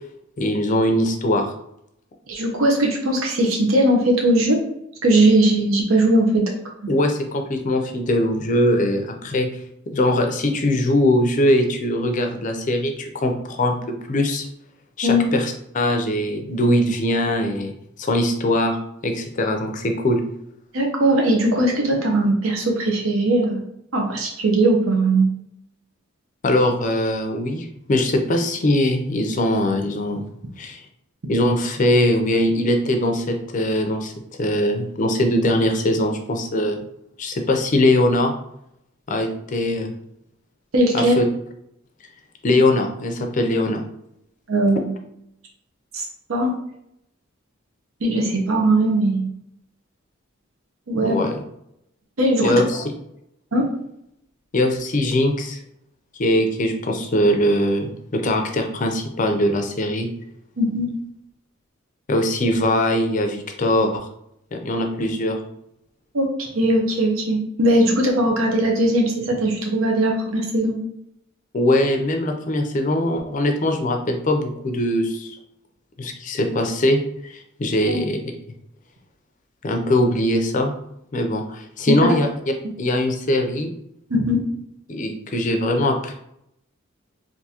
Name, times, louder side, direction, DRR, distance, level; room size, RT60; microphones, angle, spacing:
voice 1, 0.4-1.5 6.9-9.5 9.9-14.5 15.0-17.7 18.0-18.8 19.0-20.2 26.4-30.2 30.6-30.8 31.3-34.1 34.4-36.8 37.2-38.3 39.1-39.9 40.9-41.2 42.4-43.8 51.0-51.4 52.4-52.8 54.5-55.6 56.2-60.1 62.1-64.0 64.5-65.4 71.5-75.4 76.0-78.2 79.6-80.7 81.1-82.3 82.8-83.7 84.9-86.1, left 1 dB, 40° left, 4 dB, 0.4 m, -21 dB
voice 2, 2.3-4.6 5.0-6.4 6.8-6.9 15.0-15.3 20.7-23.6 23.9-25.3 40.7-41.1 44.5-44.9 45.9-46.5 48.0-49.3 50.9-51.2 52.2-52.6 53.5-53.6 60.6-60.9 66.1-70.8 77.9-78.0 81.9-82.2 84.1-84.4, right 1 dB, 80° right, 0 dB, 0.7 m, -19 dB
3.6 x 2.6 x 2.8 m, 0.76 s
head